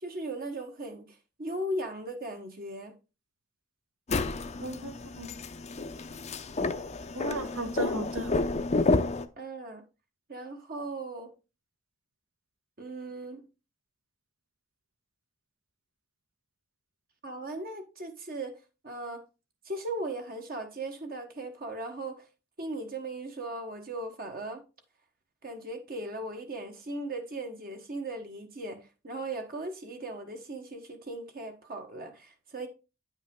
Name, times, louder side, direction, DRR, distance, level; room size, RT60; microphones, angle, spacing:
voice 1, 0.0-2.9 9.4-9.8 10.3-11.3 12.8-13.4 17.2-18.6 18.8-19.2 19.6-22.3 22.6-24.6 25.4-32.7, right 1 dB, 45° right, 1.2 m, -38 dB
sound 1, 4.1-9.2, left 3 dB, 30° left, 0.6 m, -30 dB
voice 2, 4.6-5.3 7.1-8.4, right 1 dB, 70° right, 1.3 m, -35 dB
9.4 x 5.4 x 3.7 m
head